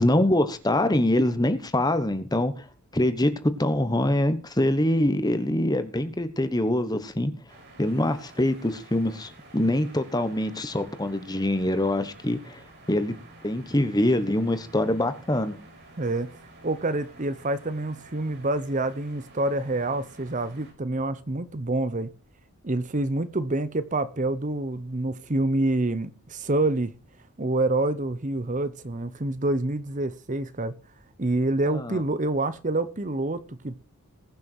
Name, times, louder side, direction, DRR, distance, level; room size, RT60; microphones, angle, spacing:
voice 1, 0.0-2.7 2.9-7.3 7.8-12.6 12.9-13.2 13.4-15.6 31.7-32.0, left 1 dB, 15° left, 1.2 m, -24 dB
sound 1, 7.5-20.7, right 2 dB, 50° right, 5.5 m, -51 dB
voice 2, 16.0-16.3 16.6-22.1 22.6-26.9 27.4-30.7 31.2-33.8, right 2 dB, 35° right, 0.8 m, -27 dB
20.5 x 6.9 x 4.6 m
head